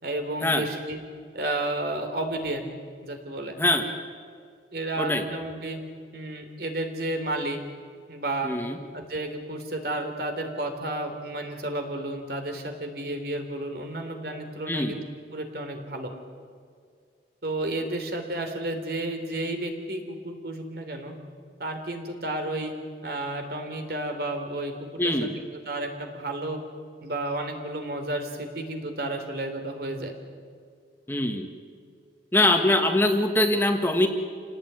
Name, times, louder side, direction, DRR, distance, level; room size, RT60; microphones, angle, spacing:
voice 1, 0.0-1.0 1.3-2.7 3.0-3.6 4.7-5.8 6.1-7.6 8.1-8.5 8.9-15.0 15.3-16.1 17.4-21.1 21.6-22.7 23.0-24.7 25.0-26.6 27.0-30.1, right 1 dB, 60° right, 5 dB, 3.6 m, -32 dB
voice 2, 8.4-8.8 14.7-14.9 25.0-25.3 31.1-31.5 32.3-34.1, left 1 dB, 10° left, 5 dB, 1.6 m, -23 dB
28.0 x 18.5 x 9.5 m, 2.1 s
head